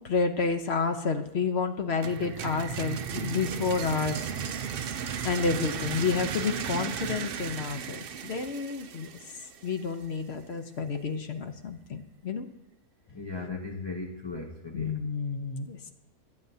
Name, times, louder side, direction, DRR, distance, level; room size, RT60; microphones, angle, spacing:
voice 1, 0.0-4.3 5.2-9.1 9.6-12.5 14.7-15.9, left 5 dB, 50° left, 8 dB, 0.9 m, -30 dB
sound 1, 2.0-9.8, right 7 dB, 80° right, 0.5 m, -35 dB
voice 2, 13.1-15.0, left 3 dB, 25° left, 1 dB, 0.6 m, -37 dB
17.0 x 11.0 x 2.8 m, 0.84 s
omnidirectional pair, 1.6 m